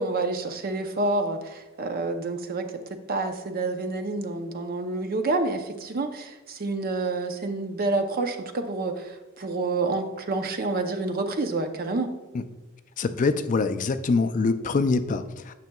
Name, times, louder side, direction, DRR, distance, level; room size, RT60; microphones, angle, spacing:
voice 1, 0.0-12.1, right 3 dB, 45° right, 7 dB, 0.6 m, -28 dB
voice 2, 13.0-15.5, left 4 dB, 40° left, 10 dB, 0.3 m, -24 dB
9.1 x 6.8 x 2.3 m, 1.1 s
head